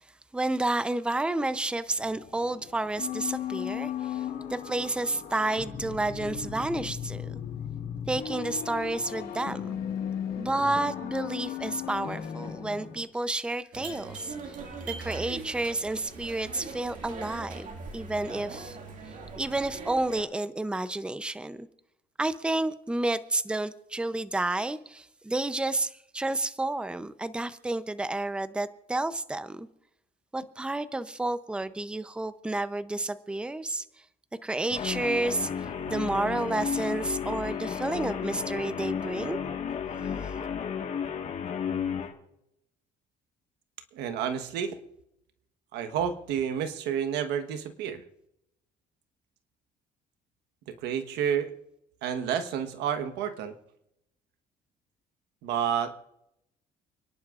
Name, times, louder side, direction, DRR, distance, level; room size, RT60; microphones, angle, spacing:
voice 1, 0.3-4.2 4.5-7.4 8.1-9.8 10.4-14.5 14.9-18.8 19.4-21.7 22.2-29.7 30.3-33.9 34.4-35.5 35.9-39.4, right 2 dB, 5° right, 12 dB, 0.6 m, -30 dB
sound 1, 2.0-13.0, left 9 dB, 65° left, 1.6 m, -36 dB
sound 2, 13.7-20.2, right 4 dB, 50° right, 2.2 m, -41 dB
Guitar, 34.7-42.1, left 7 dB, 45° left, 1.6 m, -33 dB
voice 2, 43.9-44.8 45.7-48.0 50.7-51.5 52.0-53.5 55.4-55.9, right 8 dB, 90° right, 9 dB, 1.3 m, -30 dB
29.5 x 11.0 x 2.5 m, 0.83 s
cardioid pair, 110°, 17 cm